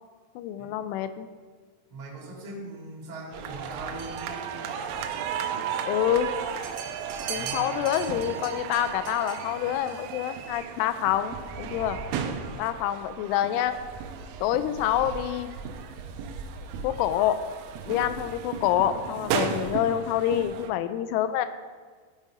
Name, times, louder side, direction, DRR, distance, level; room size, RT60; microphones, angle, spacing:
voice 1, 0.4-1.3 5.9-6.3 7.3-12.0 12.6-13.8 14.4-15.5 16.8-17.4 17.9-21.5, left 11 dB, 85° left, 11 dB, 2.8 m, -27 dB
voice 2, 1.9-4.8 7.3-7.9, right 2 dB, 35° right, -4 dB, 2.3 m, -41 dB
sound 1, 3.3-20.7, right 7 dB, 90° right, 3.4 m, -34 dB
12.5 x 5.8 x 5.0 m, 1.5 s
omnidirectional pair, 6.0 m